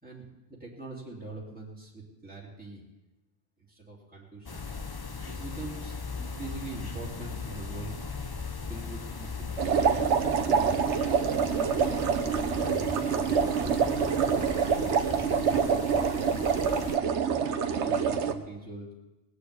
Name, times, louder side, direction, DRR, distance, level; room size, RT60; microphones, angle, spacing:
voice 1, 0.0-2.8 3.7-4.7 5.2-8.0 8.7-11.3 13.5-14.3 14.6-16.4 17.8-18.9, right 3 dB, 5° right, -4 dB, 2.8 m, -43 dB
sound 1, 4.5-17.0, left 4 dB, 30° left, 0.5 m, -38 dB
sound 2, 9.6-18.3, right 6 dB, 75° right, 1.1 m, -26 dB
19.0 x 6.7 x 8.2 m, 1.0 s
omnidirectional pair, 1.2 m